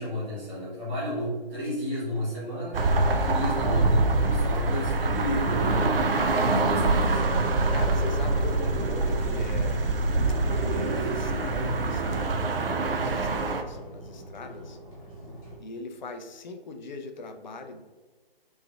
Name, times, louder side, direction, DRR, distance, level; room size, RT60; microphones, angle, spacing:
voice 1, 0.0-5.9 6.4-7.2, left 1 dB, 10° right, -9 dB, 0.9 m, -32 dB
sound 1, 2.7-13.6, right 2 dB, 65° right, 0.5 m, -25 dB
sound 2, 7.3-15.6, equal, 35° left, 1.1 m, -45 dB
voice 2, 7.7-9.9 10.5-14.8 15.6-17.8, left 3 dB, 50° left, 6 dB, 0.4 m, -41 dB
3.7 x 3.1 x 2.3 m, 1.4 s
figure-of-eight pair, 150°, 30 cm